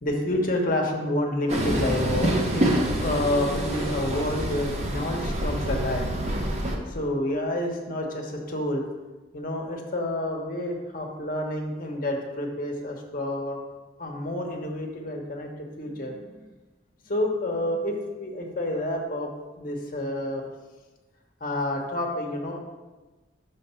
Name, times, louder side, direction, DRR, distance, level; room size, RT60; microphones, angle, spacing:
voice 1, 0.0-2.7 3.0-6.1 6.9-8.8 9.3-13.6 14.0-16.4 17.1-19.3 19.6-20.5 21.4-22.6, left 1 dB, 45° left, 1 dB, 1.0 m, -29 dB
Train, 1.5-6.8, right 1 dB, 35° right, 0.7 m, -26 dB
5.8 x 3.6 x 5.6 m, 1.2 s
head